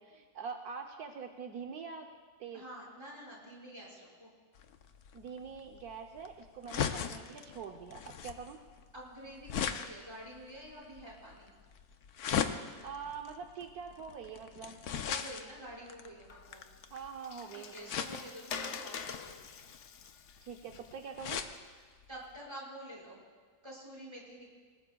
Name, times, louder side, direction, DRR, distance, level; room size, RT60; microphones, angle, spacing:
voice 1, 0.0-2.1 2.4-2.6 5.1-8.6 12.8-14.8 16.9-17.9 20.4-21.4, right 6 dB, 80° right, 3 dB, 1.3 m, -44 dB
voice 2, 2.5-4.3 8.9-11.5 15.0-16.6 17.5-19.4 22.1-23.2 23.6-24.5, right 1 dB, 15° right, -5 dB, 5.9 m, -48 dB
sound 1, 4.6-17.2 17.9-18.5 19.0-21.6 22.0-22.1 22.4-22.5, left 8 dB, 80° left, 1.3 m, -39 dB
Water, 16.3-21.7, left 6 dB, 60° left, 0.9 m, -46 dB
27.5 x 19.0 x 2.3 m, 1.5 s
omnidirectional pair, 1.6 m